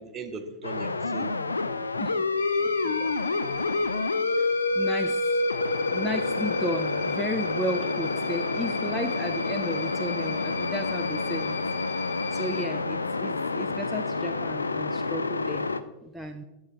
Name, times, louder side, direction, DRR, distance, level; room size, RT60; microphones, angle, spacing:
voice 1, 0.0-1.4 2.6-3.1, right 4 dB, 25° right, 8 dB, 0.8 m, -39 dB
sound 1, 0.6-15.8, left 3 dB, 80° left, 0.4 m, -28 dB
voice 2, 2.0-2.4 4.4-5.4 5.9-11.6 12.3-15.7 16.0-16.4, equal, ahead, 3 dB, 0.4 m, -34 dB
sound 2, 2.4-12.7, left 5 dB, 60° left, 0.9 m, -39 dB
13.0 x 7.0 x 2.5 m, 1.0 s
figure-of-eight pair, 90°, 0 cm